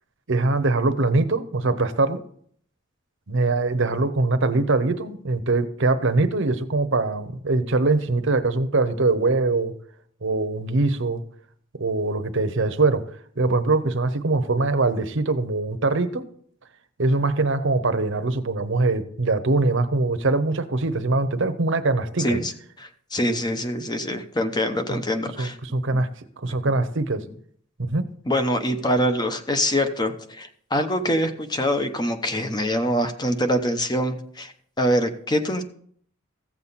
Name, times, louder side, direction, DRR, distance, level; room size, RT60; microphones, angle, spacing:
voice 1, 0.3-2.2 3.3-9.8 10.2-11.2 11.8-13.0 13.4-16.2 17.0-22.4 24.9-25.0 25.4-26.1 26.4-27.2 27.8-28.1, right 3 dB, 65° right, 10 dB, 0.9 m, -22 dB
voice 2, 22.2-22.5 22.8-25.6 28.2-35.6, equal, 20° left, 8 dB, 0.9 m, -24 dB
15.5 x 7.3 x 4.1 m, 0.62 s
head